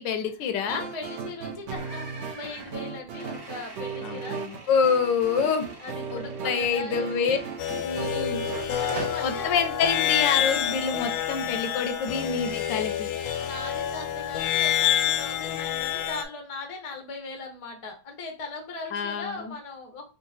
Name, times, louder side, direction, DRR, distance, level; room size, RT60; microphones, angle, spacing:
voice 1, 0.0-0.8 4.0-5.7 6.1-7.4 7.8-8.4 9.2-13.1 18.9-19.5, left 6 dB, 85° left, 8 dB, 1.3 m, -27 dB
voice 2, 0.6-4.4 5.4-5.5 5.8-7.4 8.4-9.5 12.0-12.1 13.2-20.1, left 3 dB, 50° left, 2 dB, 0.3 m, -39 dB
sound 1, 0.7-9.0, right 6 dB, 75° right, 0.6 m, -37 dB
sound 2, 1.8-8.0 8.4-9.3, right 3 dB, 50° right, 1.2 m, -44 dB
sound 3, 7.6-16.2, left 10 dB, 70° left, 0.8 m, -28 dB
3.8 x 2.4 x 4.0 m, 0.37 s
omnidirectional pair, 1.9 m